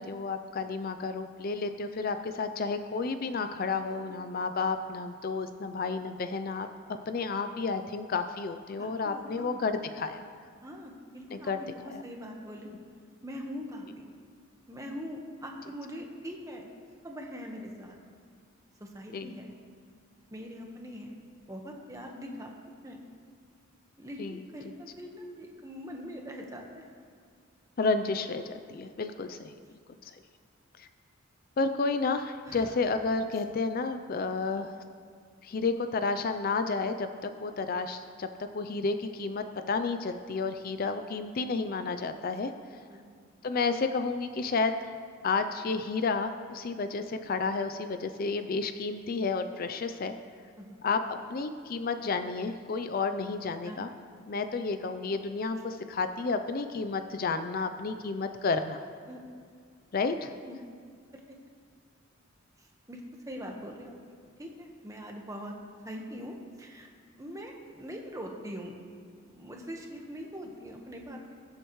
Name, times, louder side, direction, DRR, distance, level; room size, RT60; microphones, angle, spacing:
voice 1, 0.0-6.7 7.1-10.2 11.3-11.6 11.9-12.0 19.1-19.3 24.2-24.4 27.8-29.5 30.0-30.2 30.8-30.9 31.6-34.7 35.4-38.3 38.5-42.5 43.4-44.9 45.2-50.1 50.8-53.9 54.3-58.8 59.9-60.3, left 4 dB, 45° left, 9 dB, 0.4 m, -31 dB
voice 2, 8.8-9.6 10.6-12.7 13.2-14.1 14.7-16.7 17.0-18.0 18.8-19.5 20.3-21.2 21.5-22.5 22.8-23.0 24.0-26.9 32.5-32.7 42.9-43.1 50.6-50.8 53.6-53.8 59.1-59.2 60.4-60.6 62.6-63.0 63.3-65.5 65.8-66.9 67.2-68.8 69.1-71.3, equal, 15° right, 1 dB, 1.2 m, -42 dB
22.0 x 7.9 x 3.1 m, 2.2 s
head